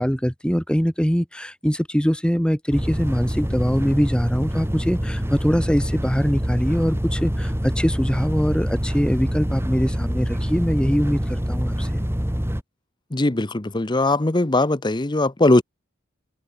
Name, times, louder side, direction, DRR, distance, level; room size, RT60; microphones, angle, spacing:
voice 1, 0.0-12.0, equal, 5° left, 1.9 m, -23 dB
sound 1, 2.7-12.6, equal, 10° right, 2.2 m, -25 dB
voice 2, 13.1-15.6, left 2 dB, 20° left, 0.8 m, -20 dB
head